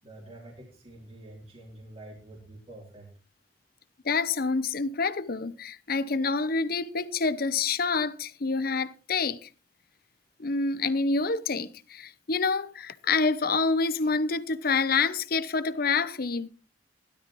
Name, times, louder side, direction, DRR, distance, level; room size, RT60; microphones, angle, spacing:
voice 1, 0.0-3.1, right 1 dB, 35° right, 3.5 m, -47 dB
voice 2, 4.0-9.5 10.4-16.5, left 4 dB, 55° left, 0.8 m, -27 dB
17.0 x 12.5 x 3.1 m
head